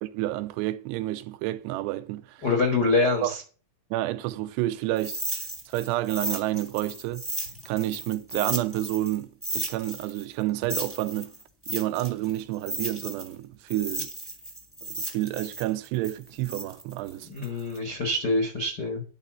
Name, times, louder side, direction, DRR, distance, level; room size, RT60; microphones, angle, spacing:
voice 1, 0.0-2.5 3.2-3.4 3.9-5.2 5.7-7.2 7.6-11.3 11.7-14.1 14.8-17.3, right 16 dB, 90° right, 2.8 m, -29 dB
voice 2, 2.4-3.4 17.3-19.0, left 3 dB, 70° left, 0.9 m, -25 dB
sound 1, 5.0-9.2 9.4-13.3 13.7-17.8, right 1 dB, 15° right, 0.5 m, -34 dB
11.5 x 4.2 x 7.6 m
omnidirectional pair, 4.8 m